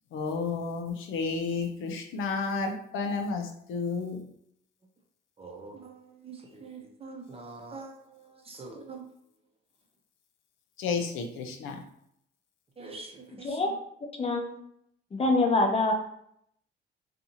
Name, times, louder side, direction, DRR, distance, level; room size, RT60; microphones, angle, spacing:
voice 1, 0.1-4.2 10.8-11.8, left 4 dB, 85° left, 4 dB, 0.5 m, -31 dB
voice 2, 5.4-8.0 8.4-9.0 12.8-13.7, right 3 dB, 30° right, 1 dB, 0.6 m, -44 dB
voice 3, 14.2-14.6 15.1-15.9, left 2 dB, 30° left, 3 dB, 0.6 m, -25 dB
2.6 x 2.4 x 2.7 m, 0.71 s
cardioid pair, 90°, 20 cm